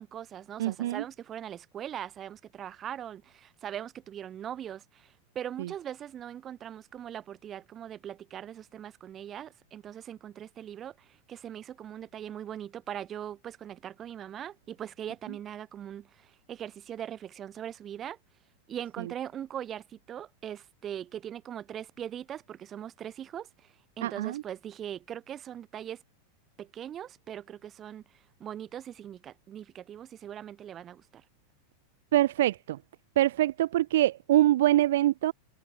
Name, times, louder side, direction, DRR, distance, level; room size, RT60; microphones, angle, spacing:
voice 1, 0.0-18.2 18.7-26.0 26.6-31.2, right 10 dB, 25° right, 1.2 m, -41 dB
voice 2, 0.6-1.0 5.6-5.7 24.0-24.4 32.1-32.8 33.2-35.3, right 14 dB, 55° right, 0.4 m, -24 dB
figure-of-eight pair, 90°, 0 cm